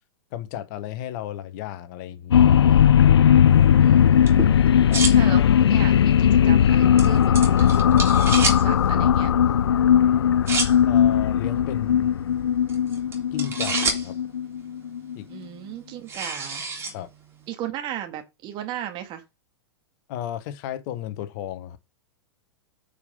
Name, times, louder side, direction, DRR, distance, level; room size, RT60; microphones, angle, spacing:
voice 1, 0.3-2.5 4.8-5.1 10.9-12.1 13.3-14.2 15.1-15.3 16.9-17.1 20.1-21.8, left 11 dB, 45° left, 1.1 m, -34 dB
sound 1, 2.3-15.2, left 9 dB, 70° left, 0.4 m, -18 dB
sound 2, 3.5-17.5, right 3 dB, 20° right, 3.3 m, -33 dB
voice 2, 3.8-4.5 5.2-7.8 8.3-9.3 15.3-16.6 17.5-19.2, right 11 dB, 35° right, 1.9 m, -36 dB
9.4 x 5.2 x 5.3 m
figure-of-eight pair, 100°, 14 cm